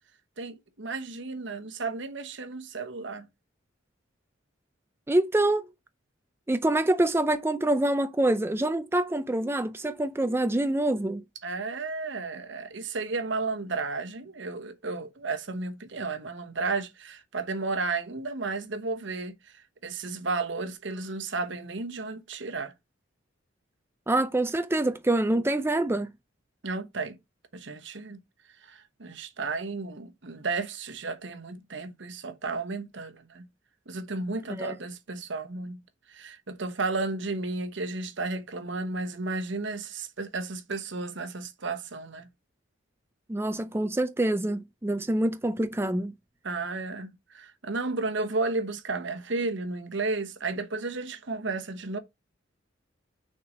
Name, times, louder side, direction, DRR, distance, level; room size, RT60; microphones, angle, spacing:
voice 1, 0.4-3.3 11.4-19.3 19.8-22.7 26.6-27.2 27.5-28.2 28.6-33.5 33.9-35.8 36.1-42.3 46.4-52.0, right 3 dB, 70° right, 1.1 m, -33 dB
voice 2, 5.1-5.7 6.5-11.2 24.1-26.1 34.5-34.8 43.3-46.1, right 1 dB, 15° right, 0.4 m, -26 dB
6.4 x 4.3 x 5.2 m
head